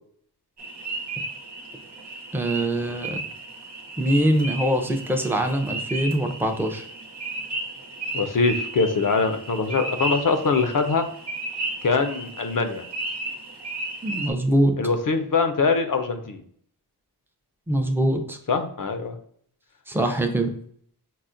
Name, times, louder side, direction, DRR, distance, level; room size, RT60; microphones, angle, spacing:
sound 1, 0.6-14.3, right 2 dB, 80° right, 0.9 m, -34 dB
voice 1, 2.3-3.2 4.0-6.8 14.0-14.8 17.7-18.4 19.9-20.5, right 1 dB, 5° right, 4 dB, 0.5 m, -23 dB
voice 2, 8.1-11.1 11.8-12.8 14.8-16.4 18.5-19.2, left 4 dB, 55° left, 7 dB, 0.5 m, -23 dB
5.5 x 2.1 x 2.5 m, 0.63 s
wide cardioid pair, 85°, 40 cm